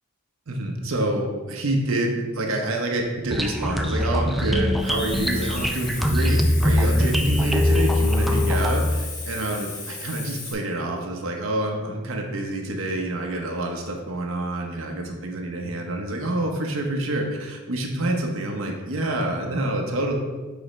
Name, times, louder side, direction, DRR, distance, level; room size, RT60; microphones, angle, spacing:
voice 1, 0.5-20.1, right 1 dB, 75° right, 2 dB, 0.8 m, -27 dB
sound 1, 3.3-8.9, left 1 dB, ahead, 0.3 m, -22 dB
Hiss, 4.8-10.5, left 4 dB, 40° left, 1.2 m, -36 dB
5.1 x 4.9 x 4.2 m, 1.3 s
head